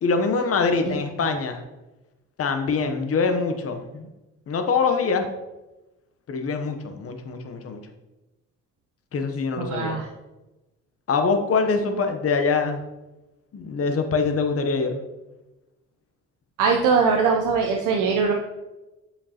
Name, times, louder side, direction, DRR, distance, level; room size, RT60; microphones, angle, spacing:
voice 1, 0.0-1.6 2.4-4.1 4.5-5.3 6.3-7.8 9.1-10.0 11.1-12.8 13.5-15.0, left 4 dB, 50° left, 6 dB, 0.9 m, -24 dB
voice 2, 9.6-10.1 16.6-18.3, right 5 dB, 90° right, 1 dB, 0.7 m, -21 dB
7.2 x 5.2 x 2.9 m, 1.0 s
cardioid pair, 90°, 30 cm